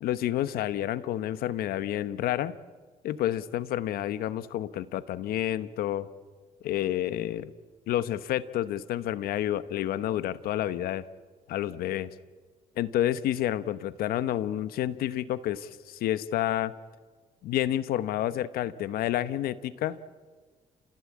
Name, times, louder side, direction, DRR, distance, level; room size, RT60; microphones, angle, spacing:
voice 1, 0.0-2.5 3.0-6.1 6.6-7.5 7.9-11.0 11.5-12.1 12.8-16.7 17.4-20.0, left 12 dB, 85° left, 15 dB, 1.0 m, -29 dB
30.0 x 16.5 x 8.5 m, 1.5 s
cardioid pair, 85°, 15 cm